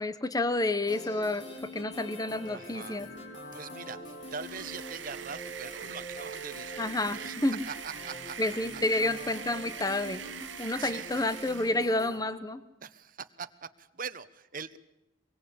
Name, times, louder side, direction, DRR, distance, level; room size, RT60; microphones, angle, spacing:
voice 1, 0.0-3.1 6.8-7.6 8.4-10.2 10.6-12.6, left 2 dB, 20° left, 13 dB, 1.0 m, -30 dB
sound 1, 0.9-12.2, equal, 65° left, 4.6 m, -44 dB
voice 2, 2.5-3.0 3.5-6.7 7.0-7.3 7.6-8.4 10.8-11.1 12.8-14.8, right 6 dB, 45° right, 11 dB, 1.1 m, -42 dB
sound 2, 4.1-11.9, right 9 dB, 70° right, 0.9 m, -43 dB
24.0 x 23.0 x 8.5 m, 0.91 s
head